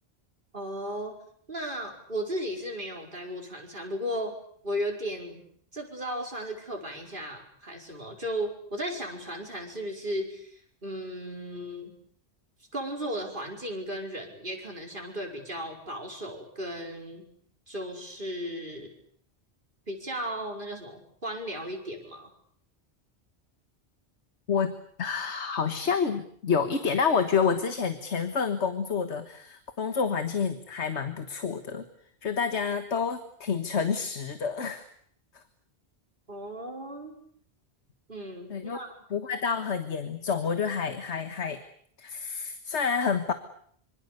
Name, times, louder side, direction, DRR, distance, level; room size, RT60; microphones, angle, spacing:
voice 1, 0.5-1.2 1.5-4.4 4.6-5.4 5.7-11.9 12.7-17.2 17.7-18.9 19.9-22.3 36.3-37.1 38.1-38.9, equal, 50° right, 1 dB, 5.3 m, -35 dB
voice 2, 25.0-31.8 32.2-34.9 35.3-35.4 38.5-38.8 39.1-41.6 42.0-43.3, left 6 dB, 85° left, 9 dB, 1.7 m, -28 dB
25.5 x 25.5 x 6.7 m, 0.63 s
omnidirectional pair, 1.1 m